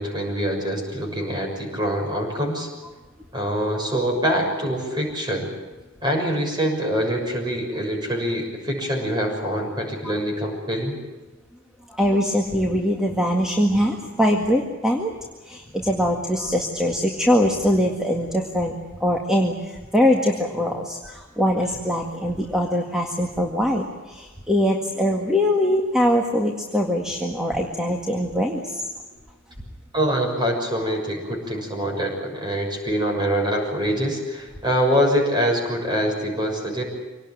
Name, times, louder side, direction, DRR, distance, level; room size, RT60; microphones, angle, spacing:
voice 1, 0.0-2.7 3.3-5.5 6.0-11.0 29.9-36.8, equal, 20° right, 2 dB, 6.5 m, -24 dB
voice 2, 11.9-15.1 15.4-28.8, equal, 5° right, 1 dB, 1.9 m, -22 dB
25.5 x 19.0 x 9.3 m, 1.2 s
head